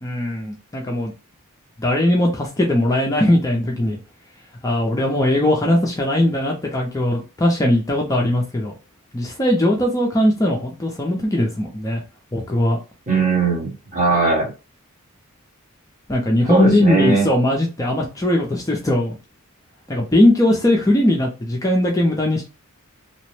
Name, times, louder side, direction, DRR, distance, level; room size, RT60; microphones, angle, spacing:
voice 1, 0.0-1.1 1.8-4.0 4.6-8.7 9.1-12.0 12.3-12.8 16.1-19.2 19.9-22.5, left 1 dB, 15° left, -1 dB, 0.4 m, -19 dB
voice 2, 13.1-14.5 16.5-17.3, right 3 dB, 35° right, -3 dB, 1.3 m, -19 dB
2.8 x 2.0 x 3.1 m, 0.30 s
head